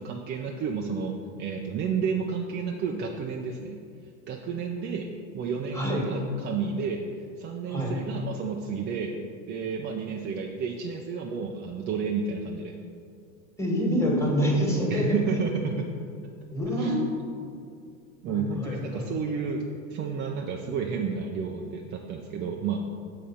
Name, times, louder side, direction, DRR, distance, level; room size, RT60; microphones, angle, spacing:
voice 1, 0.0-3.8 4.3-5.1 5.3-7.0 7.4-9.1 9.5-12.8 14.9-15.9 16.8-17.0 18.2-19.6 19.9-22.8, right 5 dB, 25° right, 1 dB, 0.4 m, -31 dB
voice 2, 5.7-6.0 7.7-7.9 13.6-15.1 16.5-17.0 18.3-19.1, equal, 5° left, -2 dB, 1.5 m, -26 dB
6.9 x 3.8 x 5.4 m, 2.3 s
hypercardioid pair, 105°, 42 cm